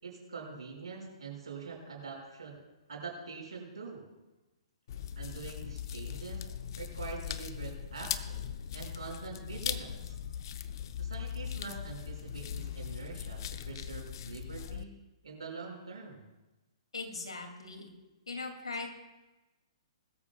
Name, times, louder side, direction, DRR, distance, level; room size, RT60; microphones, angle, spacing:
voice 1, 0.0-2.6 2.9-4.0 5.2-6.5 6.8-10.1 11.0-14.9 15.2-16.3, right 4 dB, 70° right, -1 dB, 5.5 m, -44 dB
sound 1, 4.9-14.8, left 9 dB, 50° left, 0.7 m, -39 dB
voice 2, 16.9-17.9 18.3-18.9, left 3 dB, 75° left, 4 dB, 2.5 m, -39 dB
21.0 x 13.5 x 2.3 m, 1.1 s
figure-of-eight pair, 120°, 3 cm